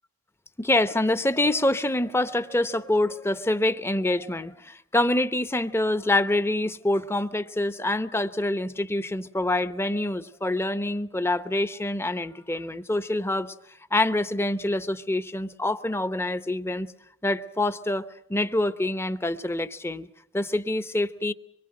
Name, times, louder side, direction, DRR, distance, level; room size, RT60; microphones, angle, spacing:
voice 1, 0.6-13.5 13.9-16.9 17.2-20.1 20.3-21.3, left 1 dB, 10° left, 0.9 m, -26 dB
25.0 x 22.5 x 7.8 m
head